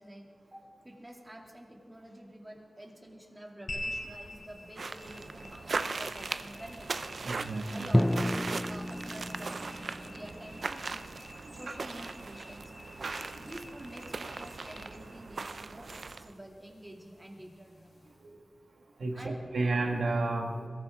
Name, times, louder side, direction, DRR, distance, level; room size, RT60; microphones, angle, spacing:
voice 1, 0.0-7.0 7.7-11.1 11.5-12.7 13.4-18.1 19.1-19.4, right 1 dB, 20° right, 0 dB, 2.6 m, -48 dB
sound 1, 3.7-18.3, left 1 dB, 70° left, 3.2 m, -48 dB
sound 2, 4.8-16.3, right 4 dB, 70° right, 0.5 m, -39 dB
voice 2, 7.2-7.8 13.0-13.1 19.0-20.7, right 2 dB, 90° right, 3 dB, 1.8 m, -31 dB
Drum, 7.9-11.7, left 1 dB, 10° left, 0.4 m, -32 dB
23.0 x 14.5 x 3.6 m, 2.1 s
wide cardioid pair, 85°, 0 cm